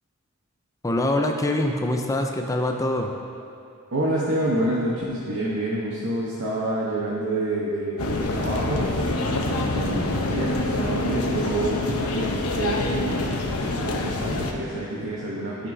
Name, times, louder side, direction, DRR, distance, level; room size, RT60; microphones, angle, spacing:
voice 1, 0.8-3.1, left 1 dB, 15° left, 3 dB, 0.4 m, -24 dB
voice 2, 3.9-8.9 9.4-12.3 12.5-15.7, right 1 dB, 60° right, -6 dB, 1.0 m, -28 dB
sound 1, 8.0-14.5, left 2 dB, 85° left, 0.8 m, -26 dB
14.0 x 5.5 x 2.7 m, 2.7 s
head